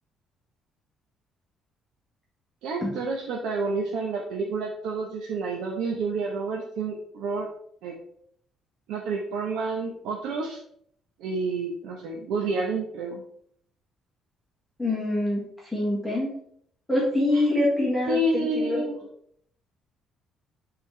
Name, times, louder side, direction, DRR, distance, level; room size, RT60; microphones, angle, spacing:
voice 1, 2.6-7.5 7.8-7.9 8.9-10.6 11.2-13.2 17.3-17.4 18.1-18.9, right 3 dB, 80° right, -1 dB, 1.0 m, -29 dB
voice 2, 14.8-15.4 15.7-16.4 16.9-18.8, left 1 dB, 5° left, -6 dB, 1.6 m, -25 dB
8.4 x 3.8 x 3.3 m, 0.66 s
cardioid pair, 155°, 0 cm